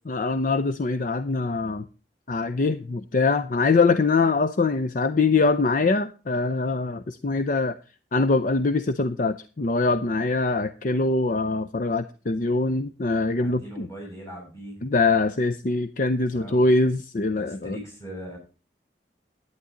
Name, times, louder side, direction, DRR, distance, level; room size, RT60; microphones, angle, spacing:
voice 1, 0.1-1.9 2.3-7.8 8.1-13.9 14.8-17.8, left 3 dB, 45° left, 12 dB, 0.5 m, -23 dB
voice 2, 13.4-14.8 16.3-16.7 17.3-18.4, right 1 dB, 15° left, -2 dB, 7.6 m, -40 dB
11.5 x 9.6 x 3.8 m, 0.34 s
head